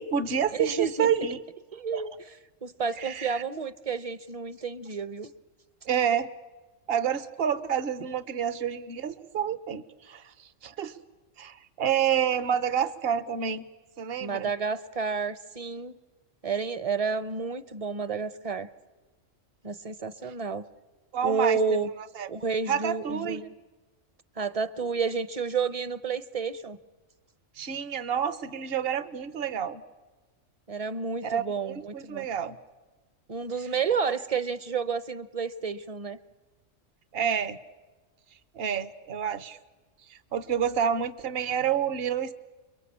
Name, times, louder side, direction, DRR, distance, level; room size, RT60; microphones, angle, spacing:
voice 1, 0.0-1.4 1.9-2.0 3.0-3.4 5.9-6.3 6.9-10.9 11.4-13.6 14.0-14.5 21.1-21.8 22.1-22.3 22.7-23.4 27.6-29.8 31.2-32.6 37.1-37.6 38.5-39.6 40.1-42.3, right 8 dB, 50° right, 15 dB, 1.3 m, -28 dB
voice 2, 0.5-1.1 1.7-2.1 2.6-5.3 14.2-16.0 16.4-18.7 19.6-20.7 21.2-21.9 22.3-23.5 24.4-26.8 30.7-32.3 33.3-36.2, right 5 dB, 30° right, 16 dB, 0.9 m, -30 dB
29.5 x 22.5 x 8.6 m, 1.2 s
omnidirectional pair, 1.3 m